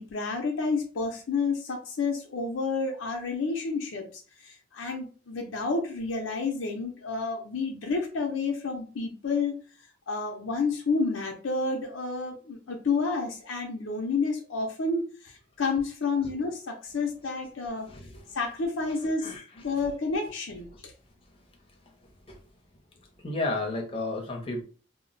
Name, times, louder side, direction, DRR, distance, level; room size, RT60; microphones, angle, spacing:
voice 1, 0.0-9.6 10.1-17.9 18.3-19.3 19.6-20.9, left 4 dB, 80° left, 1 dB, 0.5 m, -30 dB
voice 2, 17.9-18.3 19.0-19.4 20.7-20.8 22.3-22.4 23.2-24.6, left 2 dB, 25° left, 1 dB, 0.6 m, -33 dB
2.2 x 2.0 x 3.8 m, 0.37 s
head